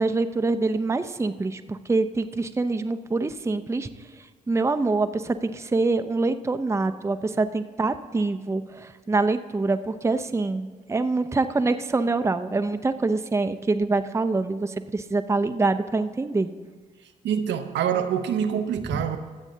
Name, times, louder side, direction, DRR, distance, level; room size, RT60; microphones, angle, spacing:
voice 1, 0.0-3.9 4.5-16.5 18.9-19.1, right 3 dB, 15° right, 0.6 m, -25 dB
voice 2, 17.2-19.2, right 8 dB, 60° right, 0.7 m, -25 dB
24.0 x 8.1 x 2.8 m
figure-of-eight pair, 40°, 21 cm